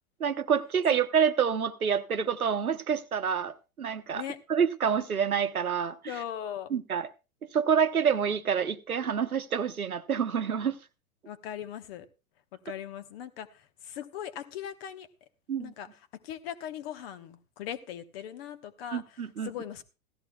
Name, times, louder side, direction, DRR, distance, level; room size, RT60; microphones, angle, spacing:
voice 1, 0.2-4.2 4.5-6.0 6.7-7.1 7.5-10.8 15.5-15.7 18.9-19.5, right 7 dB, 80° right, 12 dB, 0.9 m, -27 dB
voice 2, 6.1-6.7 11.3-12.1 12.6-15.1 15.6-15.9 16.2-19.8, left 10 dB, 45° left, 11 dB, 1.1 m, -39 dB
16.5 x 13.5 x 2.3 m, 0.30 s
figure-of-eight pair, 95°, 43 cm